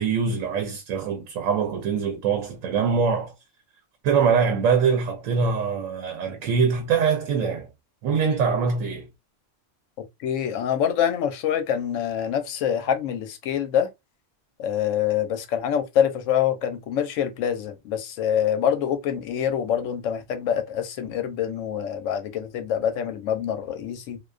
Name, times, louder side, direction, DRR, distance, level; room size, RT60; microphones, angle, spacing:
voice 1, 0.0-3.3 4.0-7.7 8.0-9.1, right 6 dB, 80° right, 0.9 m, -23 dB
voice 2, 10.2-13.9 14.6-24.2, left 9 dB, 75° left, 0.9 m, -25 dB
2.4 x 2.2 x 2.3 m
omnidirectional pair, 1.3 m